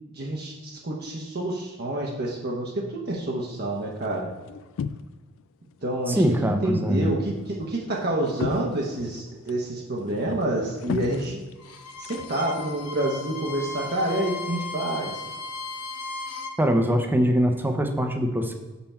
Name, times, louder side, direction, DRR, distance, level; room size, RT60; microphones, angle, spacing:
voice 1, 0.1-4.3 5.8-11.4 12.0-15.2, right 1 dB, 45° right, -2 dB, 0.9 m, -28 dB
sound 1, 3.5-5.4 5.7-6.4 6.7-12.7, left 6 dB, 60° left, 0.3 m, -37 dB
voice 2, 6.1-7.1 16.6-18.5, equal, 10° right, 5 dB, 0.7 m, -23 dB
Bowed string instrument, 11.6-16.6, left 3 dB, 80° left, 0.9 m, -36 dB
5.9 x 5.7 x 4.3 m, 1.3 s
head